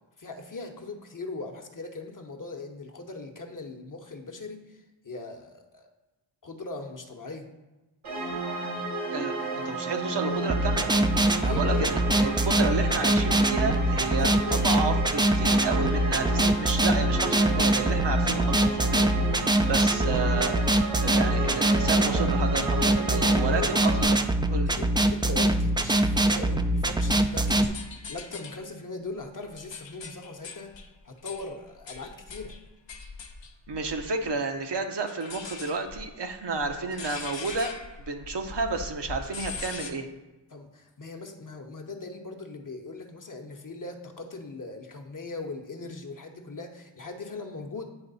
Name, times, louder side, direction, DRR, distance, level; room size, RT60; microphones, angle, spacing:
voice 1, 0.2-5.9 6.4-7.4 11.2-12.0 14.1-14.7 21.8-22.3 23.1-24.1 24.7-30.7 31.0-32.5 40.5-47.9, left 3 dB, 40° left, 3 dB, 0.9 m, -39 dB
sound 1, 8.0-24.0, right 2 dB, 75° right, 1.8 m, -32 dB
voice 2, 9.1-10.9 11.4-20.6 21.0-24.2 24.5-24.7 33.7-37.7 38.1-40.1, right 4 dB, 60° right, 4 dB, 0.8 m, -31 dB
sound 2, 10.5-27.6, right 1 dB, 10° right, 0.3 m, -24 dB
sound 3, 27.1-28.6 29.2-34.3 35.1-39.9, left 5 dB, 65° left, 0.8 m, -41 dB
8.8 x 3.2 x 4.1 m, 1.1 s
cardioid pair, 45°, 48 cm